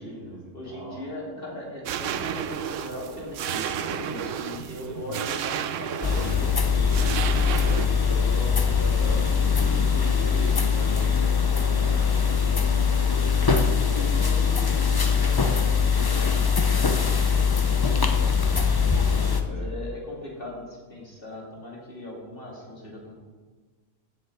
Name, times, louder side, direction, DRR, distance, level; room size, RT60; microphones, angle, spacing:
voice 1, 0.0-1.0 7.4-12.6 13.0-13.9 19.2-19.7, right 1 dB, 50° right, -3 dB, 3.0 m, -39 dB
voice 2, 0.5-7.7 13.8-18.6 19.4-23.1, left 1 dB, 45° left, -4 dB, 3.3 m, -39 dB
sound 1, 1.9-7.9, right 9 dB, 80° right, 1.0 m, -32 dB
sound 2, 6.0-19.4, left 6 dB, 25° left, 0.5 m, -22 dB
7.9 x 7.8 x 7.7 m, 1.3 s
omnidirectional pair, 1.3 m